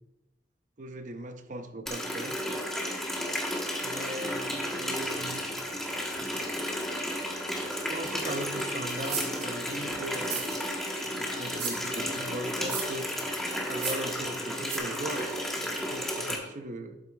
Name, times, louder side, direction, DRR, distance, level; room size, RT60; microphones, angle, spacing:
voice 1, 0.8-2.4 3.8-5.5 7.7-10.5 11.0-13.2 13.5-17.0, right 1 dB, 45° right, 8 dB, 0.7 m, -39 dB
Water tap faucet, 1.9-16.4, equal, ahead, 1.1 m, -33 dB
sound 1, 5.7-6.8 7.1-8.6 9.0-10.5 10.8-12.4 12.7-12.9, equal, 30° left, 1.7 m, -49 dB
sound 2, 9.0-9.5 10.2-10.8 11.6-11.9 12.6-13.0 13.7-14.1 14.6-14.8, right 6 dB, 70° right, 1.7 m, -35 dB
12.0 x 8.3 x 2.3 m, 1.0 s
head